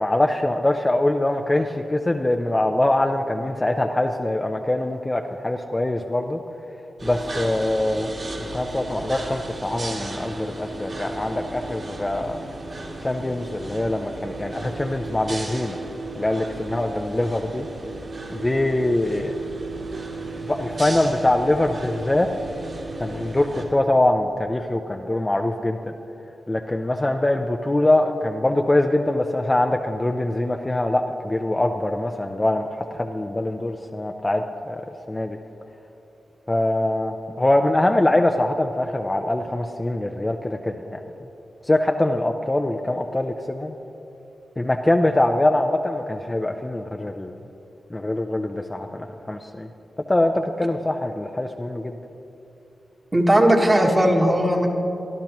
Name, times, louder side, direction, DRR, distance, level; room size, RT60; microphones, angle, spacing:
voice 1, 0.0-6.4 7.0-8.1 8.4-12.4 13.0-15.8 16.1-17.7 18.3-19.3 20.5-22.3 23.0-25.9 26.5-34.8 35.1-35.4 36.5-41.0 41.6-43.7 44.6-47.3 47.9-49.7 50.1-52.0, left 1 dB, 15° left, 4 dB, 0.5 m, -23 dB
sound 1, 7.0-23.7, right 2 dB, 50° right, 2.5 m, -34 dB
voice 2, 53.1-54.7, right 1 dB, 20° right, 1 dB, 1.4 m, -17 dB
24.0 x 13.0 x 3.0 m, 2.9 s
wide cardioid pair, 150°, 0 cm